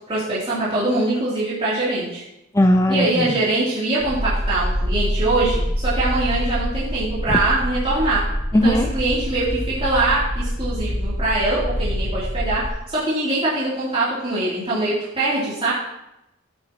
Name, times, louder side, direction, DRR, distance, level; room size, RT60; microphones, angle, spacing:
voice 1, 0.1-2.2 2.9-8.2 8.6-15.7, right 2 dB, 30° right, -10 dB, 2.8 m, -23 dB
voice 2, 2.5-3.5 7.3-7.4 8.5-8.9, equal, 15° left, 5 dB, 0.5 m, -18 dB
sound 1, 4.0-12.7, equal, 55° right, 2.7 m, -25 dB
14.5 x 8.0 x 2.9 m, 0.87 s
head